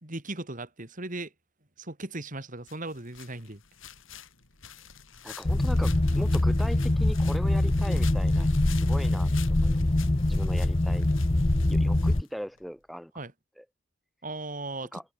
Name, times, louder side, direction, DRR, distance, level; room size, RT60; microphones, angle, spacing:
voice 1, 0.0-1.3 1.8-3.6 13.1-13.3 14.2-14.9, right 2 dB, 45° right, 3.2 m, -37 dB
sound 1, 2.7-12.7, left 9 dB, 90° left, 5.7 m, -48 dB
voice 2, 5.2-8.5 8.8-9.8 10.3-11.1 11.7-13.1 13.6-13.7 14.9-15.0, equal, ahead, 4.6 m, -39 dB
sound 2, 5.4-12.2, left 1 dB, 30° left, 0.8 m, -24 dB
head